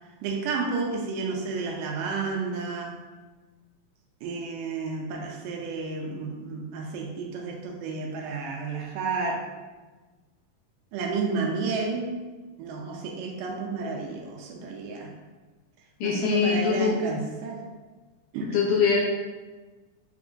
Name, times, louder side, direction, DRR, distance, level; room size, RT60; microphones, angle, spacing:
voice 1, 0.2-3.0 4.2-9.5 10.9-12.1 12.6-15.1 16.0-17.6 18.3-18.7, right 4 dB, 80° right, 1 dB, 2.1 m, -31 dB
voice 2, 16.0-16.9 18.5-19.0, left 5 dB, 75° left, -2 dB, 2.1 m, -23 dB
6.8 x 3.0 x 2.5 m, 1.3 s
omnidirectional pair, 3.9 m